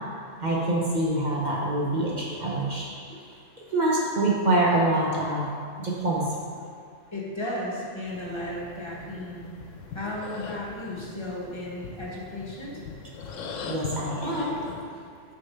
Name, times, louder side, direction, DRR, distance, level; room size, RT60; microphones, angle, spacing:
voice 1, 0.4-2.9 3.7-5.5 5.8-6.3 13.6-14.7, right 1 dB, 40° right, -4 dB, 0.9 m, -25 dB
voice 2, 7.1-9.5 9.9-12.8, left 1 dB, 25° left, -6 dB, 1.1 m, -34 dB
sound 1, 8.1-14.8, left 4 dB, 85° left, 1.0 m, -41 dB
6.6 x 3.7 x 5.5 m, 2.2 s
omnidirectional pair, 1.3 m